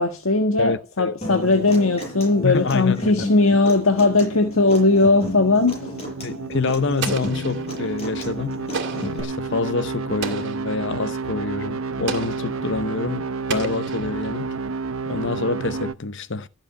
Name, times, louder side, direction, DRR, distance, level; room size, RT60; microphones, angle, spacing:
voice 1, 0.0-5.9, left 3 dB, 75° left, 1.6 m, -18 dB
voice 2, 0.6-1.2 2.4-3.3 6.2-8.7 8.9-14.6 15.1-16.5, left 3 dB, 55° left, 0.8 m, -26 dB
Human voice / Acoustic guitar, 1.2-9.2, left 1 dB, 30° left, 7.7 m, -34 dB
sound 1, 1.3-15.9, right 4 dB, 70° right, 0.8 m, -31 dB
Explosion, 7.0-7.9 8.7-9.3 10.2-10.8 12.1-12.6 13.5-14.4, right 5 dB, 55° right, 2.4 m, -32 dB
14.0 x 7.6 x 9.7 m
head